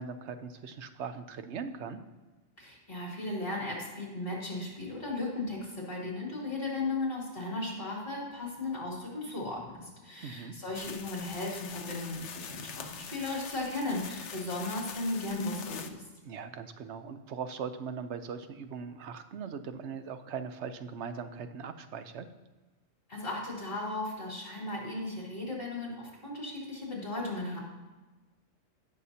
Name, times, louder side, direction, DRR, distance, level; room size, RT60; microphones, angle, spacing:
voice 1, 0.0-2.0 10.2-10.6 16.2-22.3, right 6 dB, 70° right, 9 dB, 1.0 m, -40 dB
voice 2, 2.6-16.0 23.1-27.6, left 2 dB, 50° left, -3 dB, 3.3 m, -36 dB
sound 1, 10.7-15.9, left 7 dB, 70° left, 1.0 m, -44 dB
17.5 x 6.7 x 2.8 m, 1.2 s
omnidirectional pair, 1.3 m